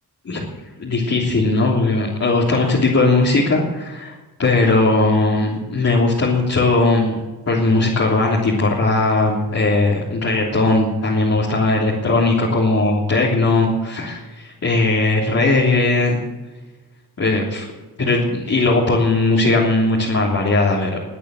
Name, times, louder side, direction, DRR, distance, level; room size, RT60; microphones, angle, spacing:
voice 1, 0.8-7.1 7.5-16.2 17.2-17.7 18.0-21.0, left 2 dB, 40° left, -5 dB, 3.3 m, -18 dB
22.0 x 8.5 x 7.8 m, 1.2 s
wide cardioid pair, 125°, 38 cm